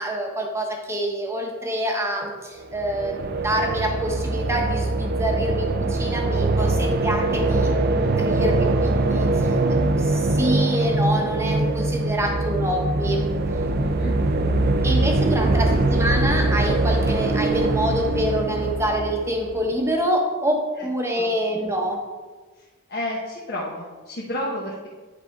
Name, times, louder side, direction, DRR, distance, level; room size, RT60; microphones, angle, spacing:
voice 1, 0.0-9.6 9.8-13.2 14.8-22.0, equal, 15° right, 1 dB, 1.0 m, -26 dB
sound 1, 2.6-19.7, right 2 dB, 50° right, 0.5 m, -22 dB
voice 2, 13.8-14.2 15.5-16.1 20.8-20.9 21.1-21.3 22.9-24.9, left 1 dB, 50° left, -4 dB, 1.1 m, -32 dB
9.5 x 4.2 x 4.7 m, 1.4 s
head